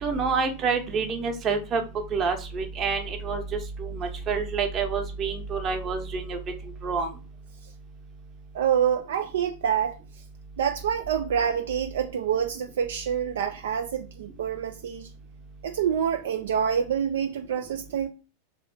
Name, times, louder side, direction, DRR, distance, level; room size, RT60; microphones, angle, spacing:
voice 1, 0.0-1.8 2.1-3.4 3.8-6.4 6.8-7.1, right 5 dB, 30° right, 0.9 m, -27 dB
voice 2, 8.5-10.0 10.6-15.1 15.6-18.1, right 8 dB, 60° right, 0.3 m, -26 dB
3.3 x 2.6 x 4.0 m
figure-of-eight pair, 90°, 0 cm